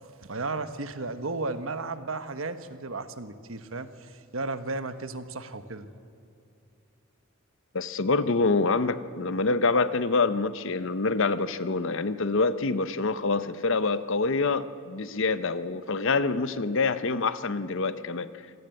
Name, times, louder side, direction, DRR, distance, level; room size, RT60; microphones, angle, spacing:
voice 1, 0.2-5.9, right 3 dB, 70° right, 10 dB, 1.3 m, -34 dB
voice 2, 7.7-18.3, left 3 dB, 60° left, 13 dB, 0.8 m, -26 dB
26.5 x 17.5 x 7.9 m, 2.6 s
head